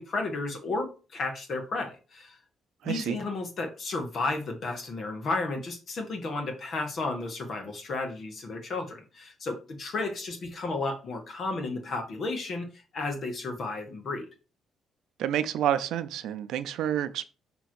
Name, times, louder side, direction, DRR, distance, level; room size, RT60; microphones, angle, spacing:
voice 1, 0.0-2.4 2.8-14.3, left 3 dB, 55° left, 1.7 m, -33 dB
voice 2, 2.8-3.2 15.2-17.3, right 10 dB, 80° right, 0.5 m, -29 dB
6.0 x 3.5 x 4.6 m
cardioid pair, 90°, 0 cm